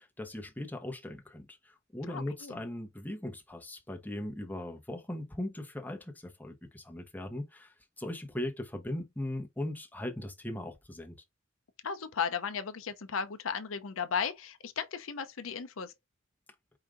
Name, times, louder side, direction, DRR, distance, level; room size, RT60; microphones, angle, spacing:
voice 1, 0.0-11.2, left 1 dB, 10° left, 1.0 m, -39 dB
voice 2, 2.1-2.6 11.8-15.9, left 6 dB, 80° left, 0.6 m, -35 dB
4.9 x 2.7 x 3.7 m
head